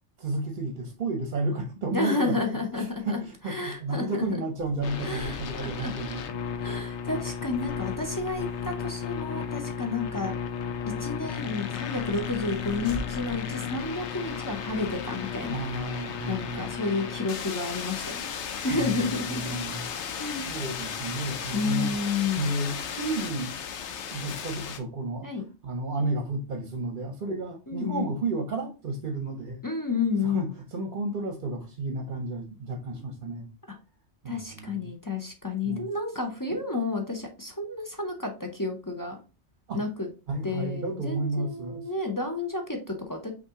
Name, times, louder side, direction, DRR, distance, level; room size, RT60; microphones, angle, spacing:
voice 1, 0.2-6.2 15.5-16.7 18.7-19.9 20.5-22.0 22.4-23.6 23.9-25.3 25.6-29.6 30.2-33.4 34.2-34.9 35.6-35.9 36.5-36.6 39.7-39.8 40.3-41.8, right 2 dB, 50° right, 4 dB, 0.8 m, -32 dB
voice 2, 1.9-3.2 3.5-4.1 5.0-5.9 6.6-10.3 11.0-15.6 16.3-19.6 20.1-20.5 21.5-22.5 25.2-25.5 27.7-28.1 29.6-30.5 34.2-39.2 39.7-40.1 40.4-43.3, left 3 dB, 25° left, 3 dB, 0.5 m, -31 dB
sound 1, 2.4-16.8, right 1 dB, 60° left, 1.6 m, -48 dB
sound 2, 4.8-24.8, left 7 dB, 80° left, 0.9 m, -34 dB
5.5 x 2.6 x 3.6 m, 0.33 s
omnidirectional pair, 1.2 m